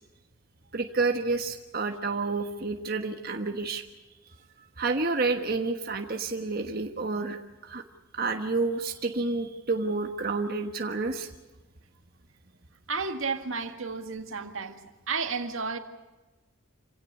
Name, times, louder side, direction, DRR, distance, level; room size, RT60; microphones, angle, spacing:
voice 1, 0.7-3.8 4.8-7.8 8.1-11.3, right 3 dB, 45° right, 1.4 m, -29 dB
voice 2, 12.9-15.8, right 4 dB, 80° right, 1.9 m, -32 dB
27.0 x 17.0 x 8.3 m
head